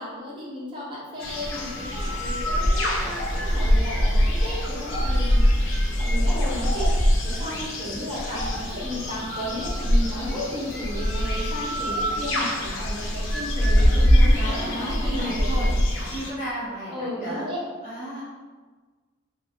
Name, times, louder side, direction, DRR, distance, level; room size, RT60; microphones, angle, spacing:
voice 1, 0.0-15.5 16.9-17.6, left 1 dB, 25° right, -7 dB, 0.8 m, -34 dB
sound 1, 1.2-16.3, equal, 70° left, 0.5 m, -23 dB
voice 2, 7.4-7.7 14.1-15.7 16.1-17.5 17.8-18.2, right 1 dB, 35° left, -14 dB, 1.2 m, -34 dB
2.5 x 2.5 x 2.6 m, 1.3 s
head